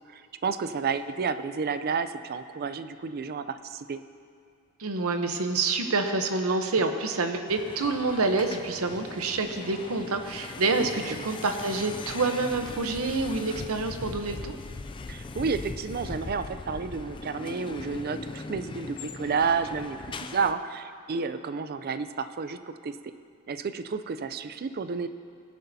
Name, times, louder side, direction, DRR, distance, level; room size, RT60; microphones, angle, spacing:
voice 1, 0.1-4.0 11.2-11.3 15.1-23.0 23.5-25.1, right 5 dB, 45° right, 11 dB, 0.4 m, -31 dB
voice 2, 4.8-14.6, right 3 dB, 70° right, 6 dB, 0.8 m, -27 dB
sound 1, 7.5-20.5, left 3 dB, 20° left, 0.3 m, -40 dB
18.5 x 11.0 x 2.7 m, 2.2 s
head